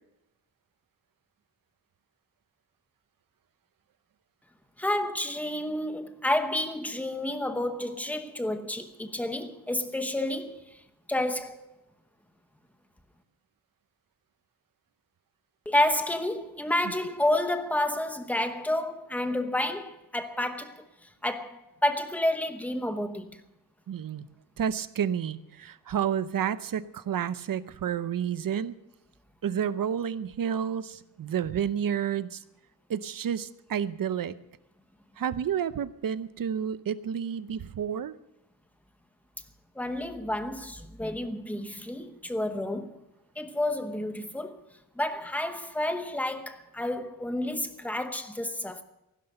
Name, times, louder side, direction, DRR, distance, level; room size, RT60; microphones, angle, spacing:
voice 1, 4.8-10.7 11.1-11.6 15.7-20.8 21.2-23.3 39.8-43.0 43.4-44.6 45.0-48.8, left 1 dB, 5° left, 0.9 m, -30 dB
voice 2, 23.9-24.3 24.6-28.8 29.4-32.4 32.9-34.3 35.2-38.2, right 8 dB, 65° right, 0.7 m, -30 dB
15.5 x 11.5 x 6.6 m
wide cardioid pair, 180°, 35 cm